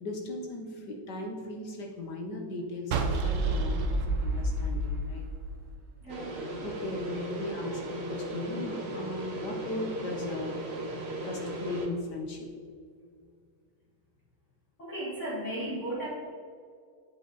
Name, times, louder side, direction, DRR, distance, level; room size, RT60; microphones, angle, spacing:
voice 1, 0.0-5.2 6.6-10.6 11.2-12.5, left 2 dB, 60° left, 1 dB, 1.5 m, -37 dB
sound 1, 2.9-6.1, right 2 dB, 70° right, 0.7 m, -29 dB
voice 2, 6.0-6.4 14.8-16.1, right 1 dB, 35° left, -8 dB, 2.4 m, -35 dB
sound 2, 6.1-11.9, right 1 dB, 40° right, 1.0 m, -37 dB
8.7 x 7.3 x 4.1 m, 2.1 s
omnidirectional pair, 2.3 m